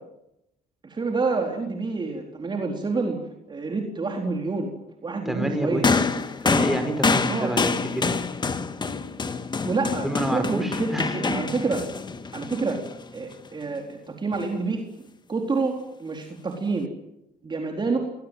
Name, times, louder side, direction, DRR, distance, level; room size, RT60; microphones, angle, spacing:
voice 1, 0.8-4.7 5.0-5.9 7.3-7.6 9.6-11.9 12.3-12.8 13.1-16.9 17.4-18.0, right 3 dB, 25° right, 3 dB, 4.2 m, -28 dB
voice 2, 5.3-6.1 6.4-8.1 10.0-11.3, right 1 dB, ahead, 6 dB, 5.8 m, -28 dB
sound 1, 5.8-13.3 14.3-14.5, left 4 dB, 25° left, 1.8 m, -26 dB
27.5 x 21.5 x 9.3 m, 0.84 s
cardioid pair, 110°, 17 cm